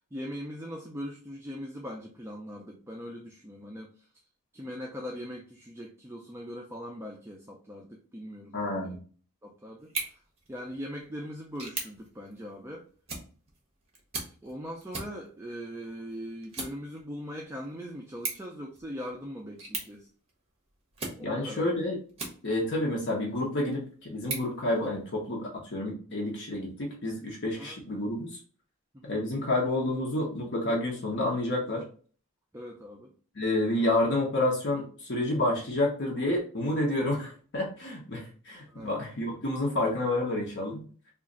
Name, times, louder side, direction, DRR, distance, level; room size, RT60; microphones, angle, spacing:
voice 1, 0.1-4.1 4.5-9.0 9.4-10.2 10.5-12.9 14.4-20.1 21.2-21.7 27.6-27.8 28.9-29.3 32.5-33.1 38.7-38.9, equal, 10° right, 0 dB, 0.4 m, -40 dB
voice 2, 8.5-9.0 21.2-22.0 22.4-28.4 29.0-31.8 33.4-40.8, left 1 dB, 50° left, -1 dB, 0.8 m, -29 dB
sound 1, 9.8-22.8 23.3-25.3, right 3 dB, 30° right, 1.0 m, -42 dB
3.0 x 2.4 x 3.7 m, 0.41 s
head